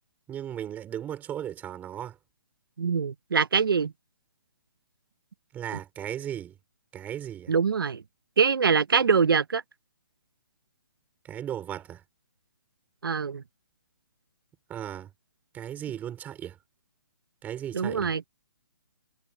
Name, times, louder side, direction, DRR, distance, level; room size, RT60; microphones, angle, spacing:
voice 1, 0.3-2.2 5.5-6.5 6.9-7.5 11.2-12.0 14.7-15.1 15.5-16.6 17.4-18.1, right 10 dB, 15° right, 3.3 m, -36 dB
voice 2, 2.8-3.9 7.5-8.0 8.4-9.6 13.0-13.4 17.7-18.3, right 6 dB, 85° right, 0.8 m, -24 dB
hypercardioid pair, 150°, 11 cm